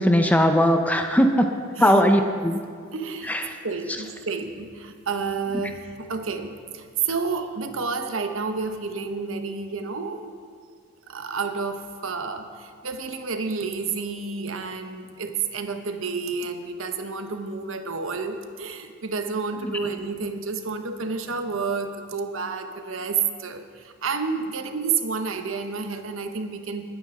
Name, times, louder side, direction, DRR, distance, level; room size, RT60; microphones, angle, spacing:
voice 1, 0.0-1.5 1.8-2.6 3.3-3.4 19.6-19.8, equal, 10° left, 5 dB, 0.6 m, -19 dB
voice 2, 1.8-2.3 2.9-3.3 3.6-10.3 11.1-26.9, right 5 dB, 85° right, 7 dB, 1.0 m, -30 dB
19.5 x 9.2 x 3.8 m, 2.1 s
head